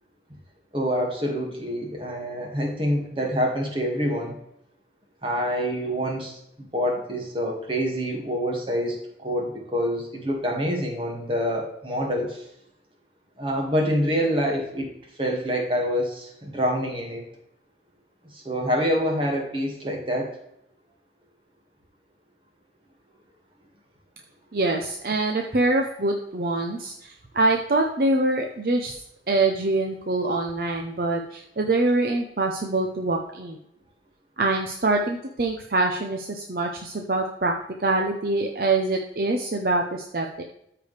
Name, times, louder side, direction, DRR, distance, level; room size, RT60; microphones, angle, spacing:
voice 1, 0.7-4.4 5.2-12.4 13.4-14.9 15.2-17.2 18.3-20.4, equal, 30° right, 0 dB, 2.0 m, -26 dB
voice 2, 24.5-28.9 29.3-33.6 34.4-37.5 37.8-40.4, right 2 dB, 55° right, 2 dB, 0.7 m, -24 dB
13.0 x 4.9 x 3.3 m, 0.78 s
head